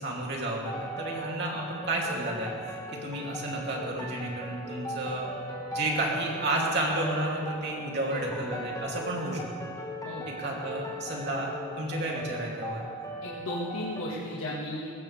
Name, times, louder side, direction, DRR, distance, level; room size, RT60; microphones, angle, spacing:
voice 1, 0.0-5.3 5.7-9.7 10.3-12.8, right 1 dB, 50° right, -2 dB, 3.0 m, -32 dB
sound 1, 0.6-14.0, equal, 15° left, 1.7 m, -39 dB
voice 2, 13.2-14.9, left 1 dB, 80° left, -6 dB, 1.9 m, -34 dB
21.5 x 17.5 x 3.5 m, 2.4 s
head